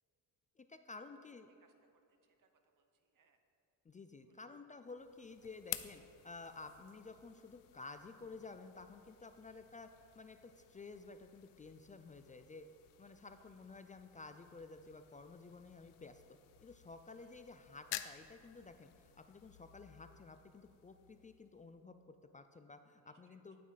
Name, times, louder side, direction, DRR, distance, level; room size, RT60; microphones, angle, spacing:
voice 1, 0.6-1.5 3.8-12.6 13.0-16.2 16.6-23.6, left 3 dB, 20° left, 8 dB, 0.3 m, -53 dB
voice 2, 1.2-3.4 4.2-4.5 9.4-9.6 13.4-13.5 17.2-17.4 23.0-23.6, right 5 dB, 50° right, 6 dB, 1.1 m, -75 dB
sound 1, 4.8-21.8, left 14 dB, 85° left, 0.6 m, -53 dB
9.2 x 8.5 x 4.0 m, 2.8 s
cardioid pair, 100°, 42 cm